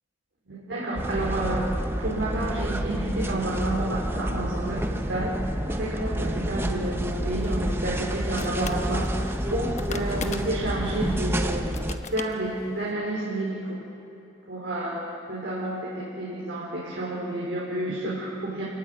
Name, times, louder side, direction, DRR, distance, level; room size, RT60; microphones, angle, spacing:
voice 1, 0.5-1.7 2.0-11.7 12.1-13.8 14.5-18.6, right 1 dB, 65° right, -5 dB, 4.3 m, -30 dB
sound 1, 1.0-12.0, equal, 10° right, 0.9 m, -29 dB
sound 2, 7.4-12.9, left 4 dB, 35° left, 1.1 m, -42 dB
28.5 x 16.0 x 9.6 m, 2.9 s
head